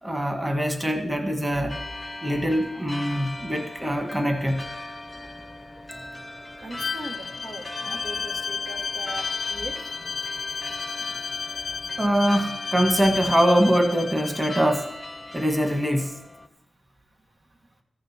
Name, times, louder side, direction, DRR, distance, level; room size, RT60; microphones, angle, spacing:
voice 1, 0.0-1.8 2.2-4.7 12.0-14.9 15.3-16.2, equal, 15° right, 1.6 m, -23 dB
sound 1, 1.7-16.5, left 1 dB, 20° left, 0.8 m, -39 dB
voice 2, 6.6-9.2 9.5-9.7, right 1 dB, 65° right, 1.6 m, -39 dB
Bowed string instrument, 6.8-14.7, left 5 dB, 65° left, 0.3 m, -32 dB
14.5 x 6.5 x 4.4 m
cardioid pair, 50°, 0 cm